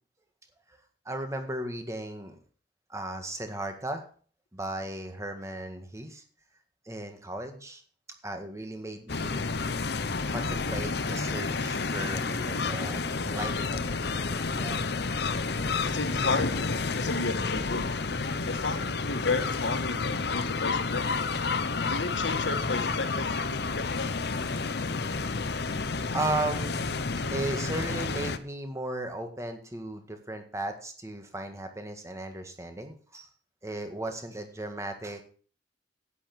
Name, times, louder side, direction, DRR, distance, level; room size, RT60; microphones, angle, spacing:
voice 1, 1.1-2.4 2.9-4.0 4.5-6.2 6.9-7.8 8.2-9.5 10.2-13.9 26.1-33.3 33.6-35.2, right 1 dB, 15° right, 6 dB, 1.8 m, -36 dB
sound 1, 9.1-28.4, left 4 dB, 60° left, 0.9 m, -30 dB
sound 2, 13.8-19.5, equal, 15° left, 1.9 m, -47 dB
voice 2, 15.8-17.9 18.5-21.4 21.9-24.1, left 3 dB, 85° left, 7 dB, 1.8 m, -33 dB
10.5 x 9.4 x 6.1 m, 0.44 s
head